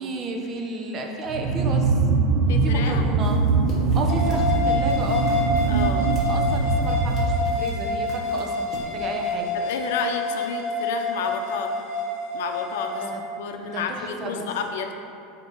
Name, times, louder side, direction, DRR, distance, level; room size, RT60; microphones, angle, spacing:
voice 1, 0.0-2.0 2.6-3.4 3.9-5.3 6.3-9.5 13.0-13.2 13.6-14.5, right 2 dB, 30° right, 2 dB, 0.7 m, -32 dB
sound 1, 1.3-7.8, right 4 dB, 75° right, 0.5 m, -22 dB
voice 2, 2.5-3.0 5.7-6.1 9.5-11.9 12.3-13.1 13.4-14.9, left 6 dB, 85° left, 5 dB, 0.6 m, -31 dB
sound 2, 3.2-9.4, equal, 20° left, 1.5 m, -43 dB
sound 3, 4.1-13.1, left 3 dB, 65° left, 1.3 m, -27 dB
7.8 x 2.9 x 5.3 m, 2.6 s
supercardioid pair, 140°, 0 cm